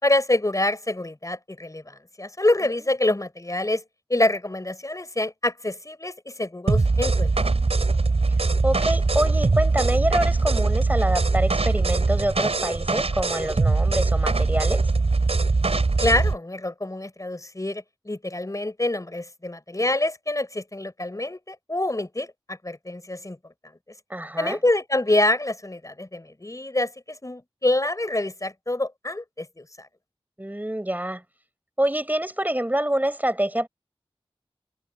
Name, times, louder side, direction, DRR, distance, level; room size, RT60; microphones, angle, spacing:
voice 1, 0.0-3.8 4.1-7.3 16.0-23.4 24.4-29.6, left 2 dB, 35° left, 4.6 m, -26 dB
sound 1, 6.7-16.4, right 3 dB, 85° right, 4.9 m, -22 dB
voice 2, 8.6-14.9 24.1-24.6 30.4-31.2 31.8-33.7, right 1 dB, 15° right, 4.6 m, -26 dB
wide cardioid pair, 55°, 10 cm